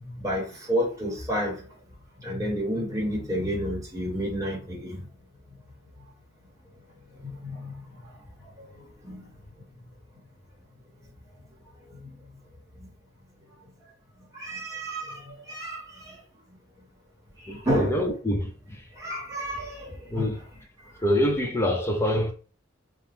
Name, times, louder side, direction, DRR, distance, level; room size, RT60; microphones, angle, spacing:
voice 1, 0.2-1.6 2.2-5.0 7.4-7.7 9.0-9.3 14.3-15.2 15.5-16.1 17.6-18.0 19.0-20.3, equal, 15° right, 1.2 m, -30 dB
voice 2, 17.5-18.8 20.1-20.4 21.0-22.3, left 1 dB, 15° left, 0.6 m, -25 dB
2.9 x 2.2 x 3.3 m
head